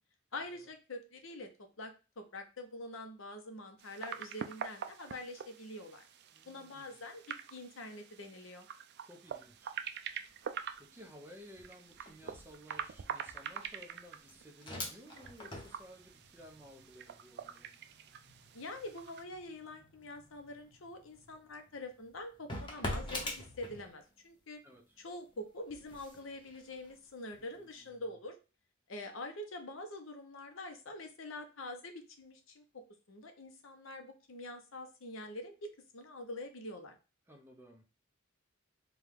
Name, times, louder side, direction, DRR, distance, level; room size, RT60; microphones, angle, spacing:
voice 1, 0.3-1.5 1.8-6.0 6.5-7.2 7.5-8.7 18.5-24.6 25.0-28.4 28.9-32.8 33.1-37.0, left 2 dB, 70° left, 5 dB, 0.8 m, -45 dB
sound 1, 3.8-19.2, right 7 dB, 55° right, 0.4 m, -46 dB
voice 2, 6.3-7.0 9.0-9.8 10.8-17.7 24.6-25.0 27.4-27.9 37.3-37.9, equal, 10° right, 2 dB, 0.8 m, -56 dB
sound 2, 9.3-9.6 9.9-24.3 24.7-27.7, left 1 dB, 25° left, 1.0 m, -47 dB
4.6 x 2.4 x 3.5 m, 0.31 s
head